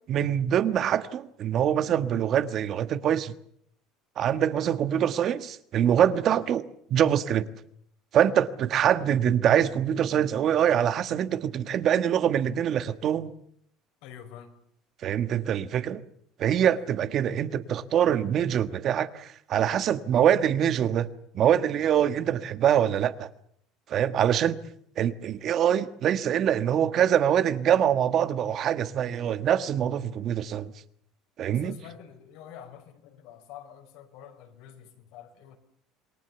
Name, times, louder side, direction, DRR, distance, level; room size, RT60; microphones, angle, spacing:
voice 1, 0.1-3.3 4.2-6.6 6.9-7.5 8.1-13.3 15.0-16.0 16.4-21.1 21.3-23.3 23.9-24.6 25.0-30.7 31.4-31.8, right 9 dB, 40° right, 1.4 m, -24 dB
voice 2, 14.0-14.6 16.7-16.9 24.1-24.3 31.5-35.6, left 9 dB, 70° left, 5.5 m, -47 dB
27.5 x 22.5 x 7.1 m
cardioid pair, 140°, 0 cm